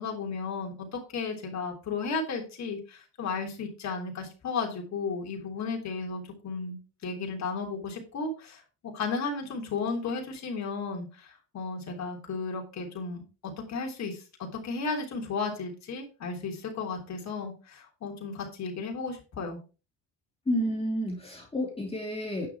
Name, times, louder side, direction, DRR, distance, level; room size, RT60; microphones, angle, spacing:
voice 1, 0.0-19.6, left 4 dB, 45° left, 1 dB, 3.5 m, -34 dB
voice 2, 20.5-22.5, equal, 15° left, 0 dB, 2.7 m, -30 dB
9.7 x 5.9 x 4.6 m, 0.33 s
cardioid pair, 145°, 40 cm